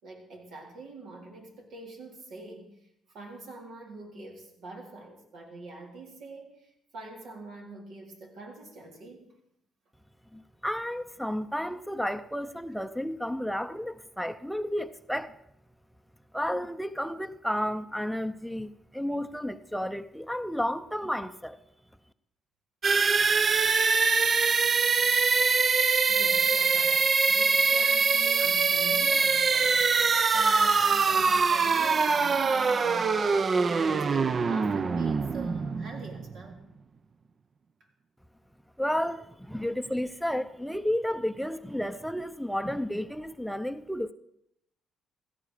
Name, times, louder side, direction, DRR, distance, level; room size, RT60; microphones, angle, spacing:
voice 1, 0.0-9.3 26.1-36.7, right 3 dB, 75° right, 3.8 m, -45 dB
voice 2, 10.3-15.3 16.3-21.6 38.8-44.1, equal, ahead, 0.6 m, -32 dB
sound 1, 22.8-36.5, right 5 dB, 40° right, 0.6 m, -24 dB
16.5 x 14.0 x 5.0 m
cardioid pair, 90°, 0 cm